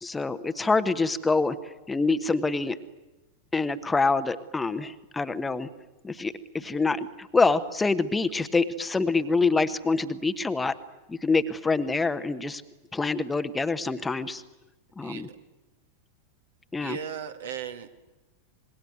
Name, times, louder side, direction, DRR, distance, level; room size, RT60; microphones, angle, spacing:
voice 1, 0.0-1.6 1.9-2.8 3.5-5.7 6.0-10.7 11.1-12.6 12.9-14.4 15.0-15.3 16.7-17.0, left 3 dB, 10° left, 11 dB, 1.2 m, -26 dB
voice 2, 15.0-15.4 16.8-17.9, right 7 dB, 60° right, 7 dB, 2.1 m, -37 dB
26.5 x 21.0 x 9.5 m, 1.1 s
figure-of-eight pair, 90°, 0 cm